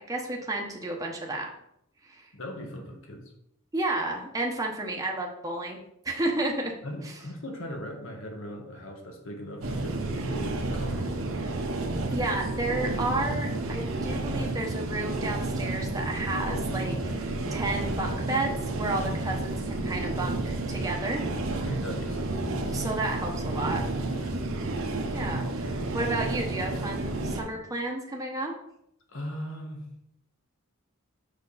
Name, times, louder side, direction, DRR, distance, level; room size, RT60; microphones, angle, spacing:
voice 1, 0.1-1.5 2.0-2.3 3.7-6.7 7.0-7.1 12.1-21.3 22.7-23.8 25.1-28.5, right 2 dB, 15° right, 0 dB, 1.0 m, -32 dB
voice 2, 2.3-3.3 6.8-11.2 21.5-22.4 24.1-24.4 29.1-29.8, equal, 65° left, 2 dB, 1.6 m, -39 dB
sound 1, 9.6-27.4, right 2 dB, 70° right, 1.1 m, -31 dB
6.9 x 6.1 x 4.1 m, 0.76 s
head